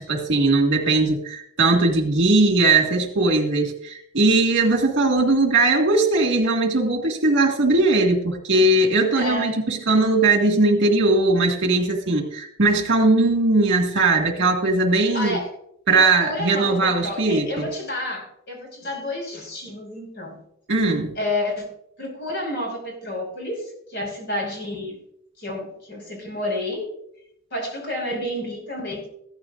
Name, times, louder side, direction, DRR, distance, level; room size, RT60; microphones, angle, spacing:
voice 1, 0.0-15.4 15.9-17.7 20.7-21.1, right 2 dB, 60° right, 3 dB, 2.0 m, -19 dB
voice 2, 9.1-9.6 15.1-15.5 15.9-20.4 21.2-21.7 22.0-25.0 25.4-26.9 27.5-29.1, left 1 dB, 55° left, 0 dB, 5.5 m, -30 dB
15.0 x 13.5 x 2.6 m, 0.73 s
head